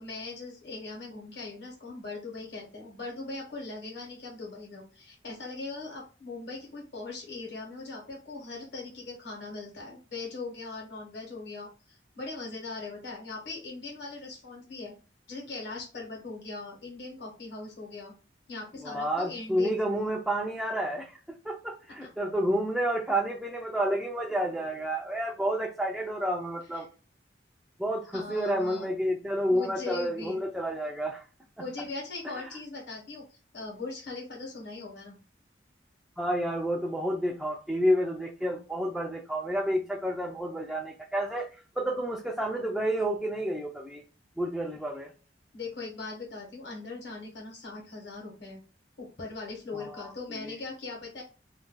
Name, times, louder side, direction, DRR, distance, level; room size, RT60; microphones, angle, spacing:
voice 1, 0.0-14.9 15.3-18.1 18.5-20.0 22.0-22.1 26.7-26.9 28.1-28.9 29.5-30.4 31.6-35.2 45.5-48.6 49.0-51.2, left 3 dB, 70° left, -2 dB, 1.1 m, -40 dB
voice 2, 18.8-21.2 21.4-26.9 27.8-31.2 31.6-31.7 36.2-44.0 44.4-45.1 49.7-50.1 50.4-50.5, equal, ahead, -1 dB, 0.3 m, -30 dB
2.5 x 2.2 x 3.7 m, 0.34 s
head